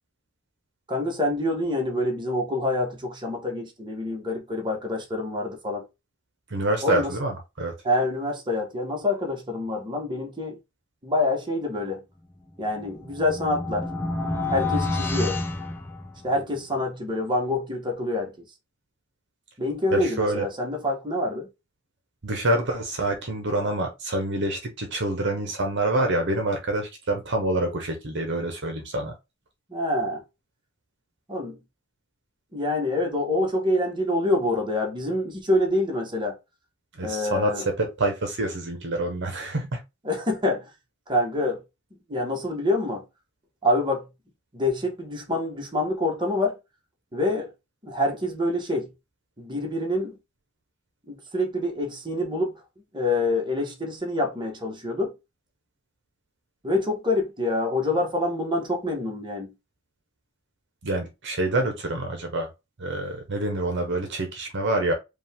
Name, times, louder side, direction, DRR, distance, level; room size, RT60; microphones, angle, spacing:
voice 1, 0.9-5.8 6.8-7.1 7.8-10.6 11.0-12.0 12.6-13.9 14.5-15.4 16.2-18.3 19.6-21.5 29.7-30.2 31.3-31.6 32.5-36.4 37.0-37.6 40.0-40.7 41.1-41.6 42.1-43.0 43.6-44.1 44.5-46.6 47.1-47.5 47.8-48.9 49.4-50.1 51.1-52.5 52.9-55.1 56.6-59.5, left 1 dB, 20° right, 1.3 m, -26 dB
voice 2, 6.5-7.7 19.9-20.5 22.2-29.1 36.9-39.8 60.8-62.5 62.8-64.9, right 2 dB, 55° right, 0.9 m, -26 dB
sound 1, 12.6-16.5, left 2 dB, 10° left, 0.7 m, -29 dB
5.1 x 2.4 x 3.5 m
head